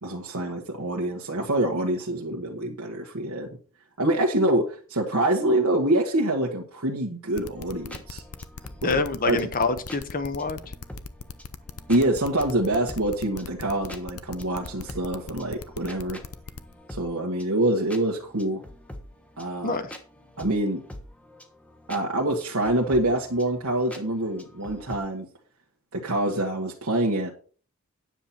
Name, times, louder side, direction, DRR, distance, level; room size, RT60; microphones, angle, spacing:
voice 1, 0.0-3.5 4.0-8.2 8.8-9.4 11.9-16.2 16.9-18.6 19.4-19.8 20.4-20.8 21.9-25.3 25.9-27.3, right 1 dB, 80° right, -2 dB, 1.5 m, -26 dB
sound 1, 7.4-16.7, left 4 dB, 90° left, 0.8 m, -39 dB
sound 2, 7.6-25.0, left 1 dB, 5° left, 1.2 m, -46 dB
voice 2, 8.8-10.6 19.6-19.9, left 3 dB, 40° left, 11 dB, 1.0 m, -26 dB
10.0 x 7.4 x 4.3 m, 0.42 s
head